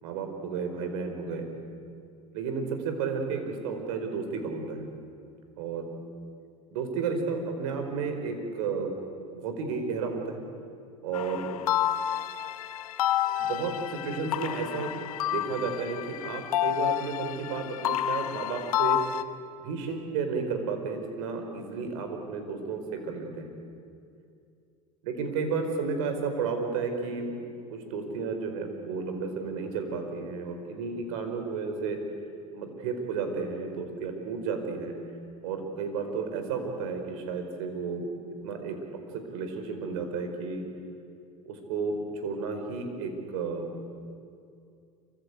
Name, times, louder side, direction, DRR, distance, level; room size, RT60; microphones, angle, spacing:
voice 1, 0.0-1.5 2.3-4.9 5.6-5.8 6.7-8.9 9.3-10.4 11.0-11.5 13.4-14.9 15.2-19.0 19.6-23.5 25.0-27.4 27.7-32.0 32.5-34.9 35.4-38.8 39.1-40.6 41.4-43.9, right 5 dB, 70° right, 5 dB, 4.8 m, -32 dB
sound 1, 11.1-19.2, left 11 dB, 80° left, 1.0 m, -30 dB
26.0 x 25.0 x 8.4 m, 2.5 s
hypercardioid pair, 75°, 18 cm